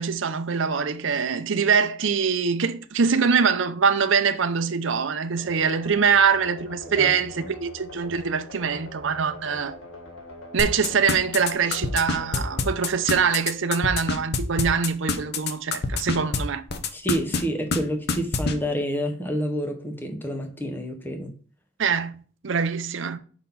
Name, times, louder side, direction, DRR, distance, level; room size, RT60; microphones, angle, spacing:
voice 1, 0.0-9.8 10.5-16.6 21.8-23.2, right 6 dB, 65° right, 0.6 m, -23 dB
sound 1, 5.4-14.1, left 2 dB, 85° left, 1.5 m, -43 dB
sound 2, 10.6-16.4 16.7-17.4 17.7-17.8 18.1-18.5, left 4 dB, 50° left, 0.7 m, -25 dB
voice 2, 16.9-21.3, equal, 10° left, 0.8 m, -28 dB
5.2 x 3.9 x 5.7 m
head